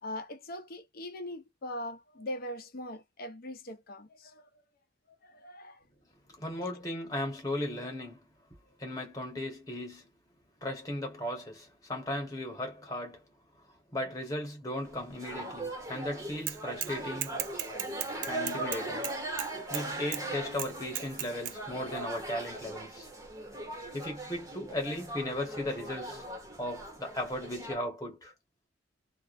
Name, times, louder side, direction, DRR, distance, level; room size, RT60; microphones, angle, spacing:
voice 1, 0.0-4.5 5.2-5.8 6.6-6.7, left 1 dB, 50° left, 0.6 m, -41 dB
voice 2, 6.4-8.3 8.8-10.1 10.6-13.2 13.9-17.4 18.3-19.1 19.7-23.1 23.9-26.2 26.6-28.3, left 1 dB, 20° left, 1.1 m, -36 dB
sound 1, 14.8-27.8, right 2 dB, 15° right, 0.7 m, -39 dB
Bicycle / Mechanisms, 16.5-16.9 17.2-19.8 20.1-20.2 20.6-21.5, right 13 dB, 65° right, 0.3 m, -35 dB
2.4 x 2.1 x 2.4 m
head